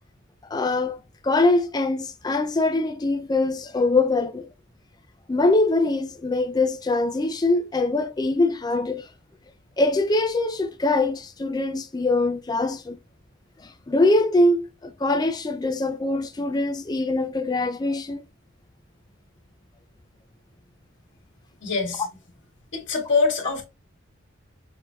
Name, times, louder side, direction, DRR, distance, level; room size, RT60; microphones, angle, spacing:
voice 1, 0.5-4.5 5.3-9.1 9.8-13.0 13.6-18.2, left 2 dB, 20° left, 0.3 m, -23 dB
voice 2, 21.6-22.1 22.7-23.6, left 4 dB, 65° left, 1.7 m, -24 dB
6.3 x 2.7 x 2.3 m
head